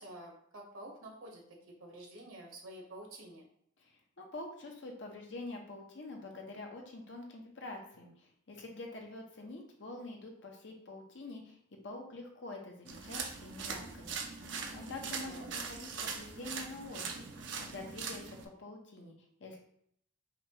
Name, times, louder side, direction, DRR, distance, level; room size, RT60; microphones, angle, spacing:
voice 1, 0.0-1.4 1.8-3.5 15.1-15.5, right 1 dB, 90° right, 0 dB, 1.2 m, -49 dB
voice 2, 3.8-11.6 11.8-14.2 14.7-19.1 19.4-19.6, left 2 dB, 65° left, 1 dB, 0.8 m, -46 dB
sound 1, 12.9-18.5, right 5 dB, 65° right, 0.5 m, -41 dB
5.0 x 2.4 x 2.9 m, 0.69 s
head